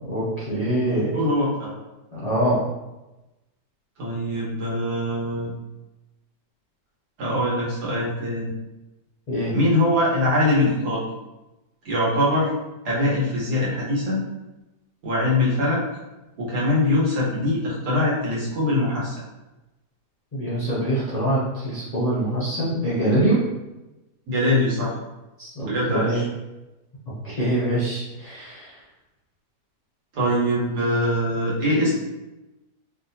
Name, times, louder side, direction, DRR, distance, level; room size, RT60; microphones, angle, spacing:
voice 1, 0.0-1.1 2.1-2.6 9.3-9.5 20.3-23.4 25.4-26.2 27.2-28.8, right 1 dB, 90° left, -8 dB, 0.3 m, -24 dB
voice 2, 1.1-1.7 4.0-5.5 7.2-8.5 9.5-11.1 11.8-12.5 12.8-14.2 15.0-15.8 16.4-19.2 24.3-24.9 25.6-26.3 30.1-31.9, left 1 dB, 70° right, -6 dB, 1.6 m, -22 dB
3.2 x 2.6 x 2.7 m, 1.0 s
omnidirectional pair, 1.8 m